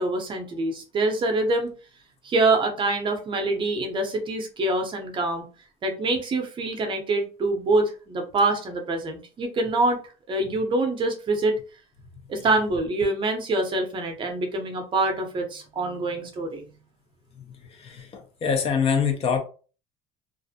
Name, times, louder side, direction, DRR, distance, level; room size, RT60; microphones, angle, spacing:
voice 1, 0.0-1.7 2.2-5.4 5.8-10.0 10.3-11.5 12.3-16.6, right 2 dB, 35° right, 0.6 m, -25 dB
voice 2, 17.8-19.4, left 6 dB, 40° left, 0.6 m, -24 dB
2.4 x 2.0 x 2.7 m
cardioid pair, 120°, 15 cm